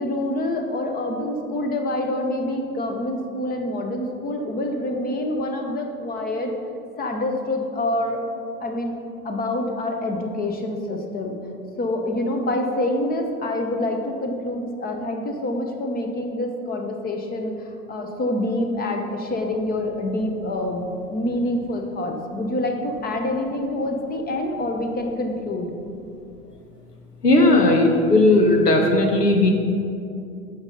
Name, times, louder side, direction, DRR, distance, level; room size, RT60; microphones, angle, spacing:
voice 1, 0.0-6.5 7.0-8.2 8.6-8.9 9.2-11.4 11.8-20.8 21.1-25.7, left 1 dB, 20° left, 3 dB, 1.1 m, -26 dB
voice 2, 27.2-29.5, left 2 dB, 85° left, 3 dB, 1.4 m, -16 dB
14.0 x 5.5 x 3.9 m, 2.6 s
figure-of-eight pair, 95°, 46 cm